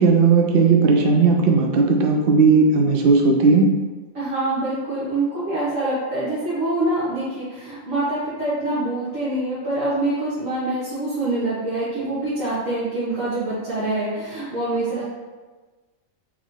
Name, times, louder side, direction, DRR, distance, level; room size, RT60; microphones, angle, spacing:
voice 1, 0.0-3.7, right 4 dB, 55° right, 2 dB, 0.7 m, -16 dB
voice 2, 4.1-15.0, right 2 dB, 80° right, -12 dB, 1.7 m, -25 dB
4.0 x 2.8 x 4.6 m, 1.3 s
omnidirectional pair, 1.3 m